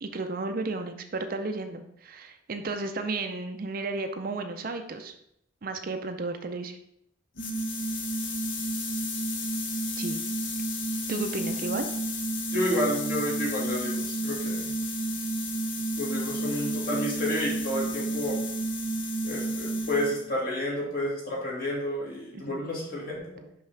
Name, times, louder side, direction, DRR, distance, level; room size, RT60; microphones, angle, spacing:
voice 1, 0.0-5.1 5.6-6.8 10.0-10.2 11.1-11.9 22.3-22.6, right 3 dB, 45° right, 7 dB, 0.5 m, -33 dB
sound 1, 7.4-20.3, right 1 dB, 65° left, 0.8 m, -31 dB
voice 2, 12.5-14.7 16.0-18.4 19.2-23.5, left 1 dB, 45° left, -4 dB, 2.0 m, -30 dB
5.7 x 5.3 x 3.4 m, 0.75 s
head